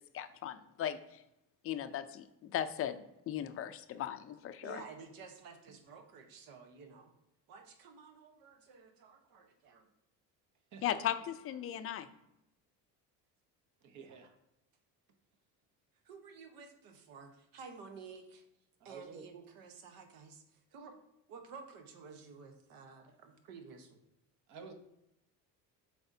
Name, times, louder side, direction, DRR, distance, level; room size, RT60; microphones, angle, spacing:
voice 1, 0.1-1.2 1.6-4.8 10.8-12.1, left 10 dB, 40° left, 11 dB, 0.5 m, -37 dB
voice 2, 4.6-7.1 7.5-9.9 14.0-14.2 16.0-18.4 18.8-20.9 21.3-24.0, right 5 dB, 80° right, 5 dB, 1.1 m, -52 dB
voice 3, 13.8-14.3 18.8-19.2 24.5-24.7, right 5 dB, 55° right, 5 dB, 1.0 m, -50 dB
7.8 x 4.8 x 2.7 m, 0.87 s
cardioid pair, 140°, 35 cm